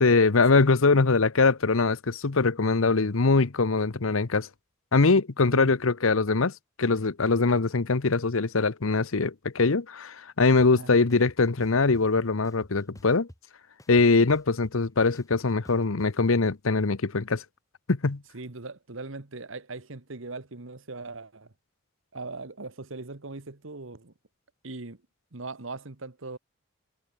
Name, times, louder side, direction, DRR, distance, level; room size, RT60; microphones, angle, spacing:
voice 1, 0.0-4.5 4.9-6.5 6.8-13.3 13.9-17.4 17.9-18.2, left 3 dB, 80° left, 0.9 m, -22 dB
sound 1, 10.6-10.7 11.1-12.0 12.4-13.5 13.8-16.1, equal, 15° left, 2.9 m, -50 dB
voice 2, 18.3-21.5 22.1-24.1 24.6-25.0 25.3-26.4, right 3 dB, 70° right, 1.4 m, -40 dB
head